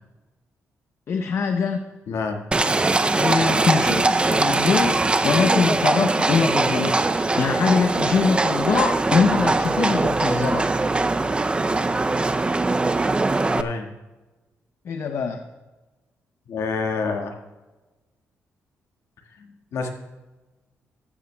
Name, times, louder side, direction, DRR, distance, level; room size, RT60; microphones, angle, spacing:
voice 1, 1.1-1.8 3.2-5.0 5.2-10.7 14.8-15.5, left 5 dB, 60° left, 6 dB, 0.7 m, -23 dB
voice 2, 2.1-2.4 13.5-13.9 16.5-17.3 19.4-19.9, left 4 dB, 75° left, 3 dB, 1.6 m, -28 dB
Livestock farm animals working animals, 2.5-13.6, right 3 dB, 20° right, 0.4 m, -21 dB
14.5 x 13.5 x 2.2 m, 1.2 s
cardioid pair, 85°, 5 cm